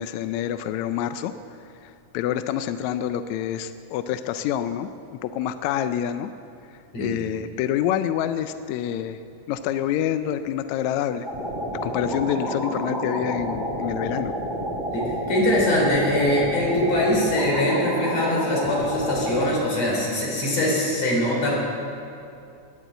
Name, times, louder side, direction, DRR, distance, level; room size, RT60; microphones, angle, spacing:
voice 1, 0.0-1.3 1.6-6.3 6.6-9.2 9.5-11.3 11.8-14.3, left 10 dB, 80° left, 11 dB, 1.6 m, -27 dB
sound 1, 11.2-19.5, equal, ahead, 3.2 m, -29 dB
voice 2, 14.9-21.5, left 1 dB, 55° left, -3 dB, 5.0 m, -22 dB
19.5 x 8.1 x 8.1 m, 2.5 s
omnidirectional pair, 3.7 m